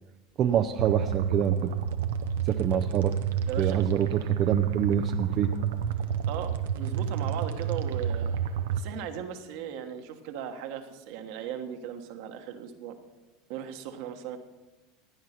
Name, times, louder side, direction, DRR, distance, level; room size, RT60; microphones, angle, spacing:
voice 1, 0.4-1.7 2.4-3.1 3.6-5.5, right 9 dB, 45° right, 6 dB, 0.6 m, -26 dB
sound 1, 0.8-8.8, right 8 dB, 85° right, 0.8 m, -29 dB
voice 2, 3.5-3.9 6.3-8.3 8.7-13.0 13.5-14.4, right 8 dB, 65° right, 6 dB, 1.4 m, -37 dB
16.5 x 9.5 x 4.5 m, 1.1 s
supercardioid pair, 100°, 0 cm